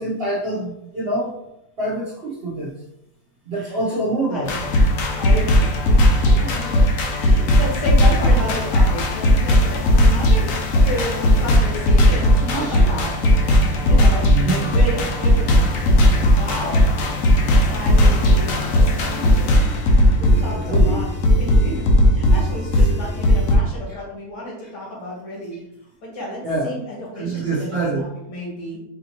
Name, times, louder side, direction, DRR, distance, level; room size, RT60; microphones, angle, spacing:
voice 1, 0.0-1.3 1.8-2.7 3.5-4.5 12.5-12.8 14.3-14.7 20.5-21.0 26.4-26.7 27.2-28.1, right 2 dB, 55° right, -6 dB, 0.7 m, -25 dB
sound 1, 4.4-23.5, equal, 65° left, 1.0 m, -17 dB
voice 2, 5.2-5.6 6.1-6.7 7.1-10.5 10.8-13.1 13.5-15.5 16.3-16.8 17.6-19.7 20.2-21.1 21.4-21.8 22.1-25.6 26.0-28.8, equal, 85° left, -6 dB, 2.4 m, -32 dB
sound 2, 12.6-19.3, right 4 dB, 70° right, 1.1 m, -35 dB
4.8 x 2.7 x 2.8 m, 0.82 s
omnidirectional pair, 1.8 m